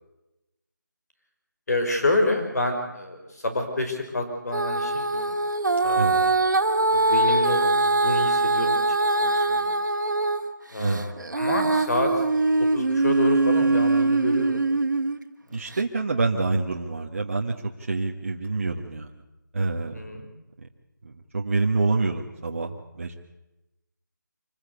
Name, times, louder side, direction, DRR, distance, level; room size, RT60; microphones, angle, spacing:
voice 1, 1.7-5.3 5.8-6.4 6.9-9.7 10.7-12.1 12.7-14.6 19.9-20.3, left 2 dB, 55° left, 5 dB, 5.3 m, -28 dB
Female singing, 4.5-10.4 10.9-15.2 15.8-15.9, right 2 dB, 65° right, 2.1 m, -22 dB
voice 2, 15.5-19.1 19.5-19.9 20.6-20.7 21.0-23.1, right 3 dB, 40° right, 1 dB, 1.6 m, -27 dB
26.0 x 15.5 x 8.2 m, 0.96 s
figure-of-eight pair, 175°, 11 cm